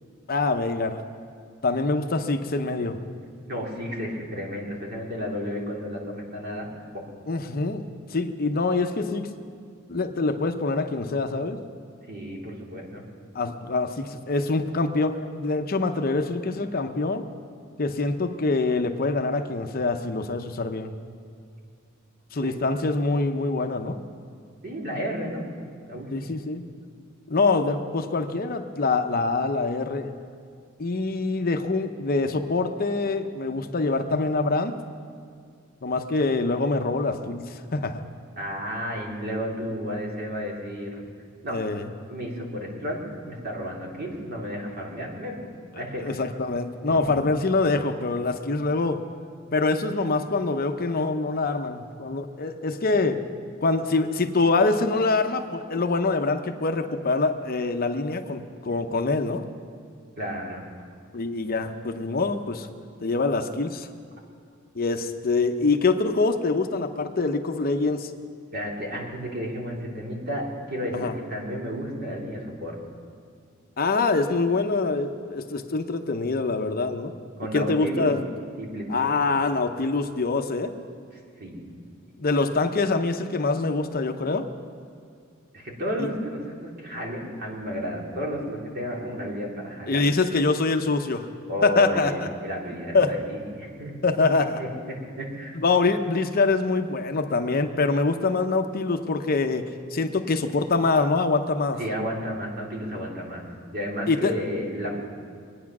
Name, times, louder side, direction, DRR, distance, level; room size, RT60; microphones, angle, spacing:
voice 1, 0.3-1.0 1.6-3.0 7.3-7.8 8.1-9.3 9.9-11.6 13.3-17.3 17.8-20.9 22.3-24.0 26.1-26.6 27.3-30.1 30.8-34.8 35.8-38.0 41.5-41.9 46.0-49.0 49.5-53.2 53.6-59.4 61.1-62.7 63.0-63.9 64.7-68.1 70.9-71.1 73.8-77.1 77.5-78.2 78.9-80.7 82.2-84.5 86.0-86.1 89.9-91.3 91.6-92.1 92.9-93.1 94.0-94.6 95.5-99.6 99.9-101.8 104.1-104.3, left 3 dB, 45° left, 6 dB, 0.8 m, -25 dB
voice 2, 3.5-6.7 6.9-7.0 12.1-13.0 22.4-22.5 24.6-25.4 25.9-26.3 38.4-41.0 41.4-41.6 42.1-45.5 45.8-46.2 46.9-47.2 60.2-60.6 68.5-72.7 77.4-78.1 78.6-79.1 81.4-81.6 85.5-90.0 91.5-93.9 94.3-95.6 101.8-105.0, equal, 50° right, -2 dB, 3.0 m, -32 dB
24.0 x 9.5 x 6.1 m, 2.2 s
head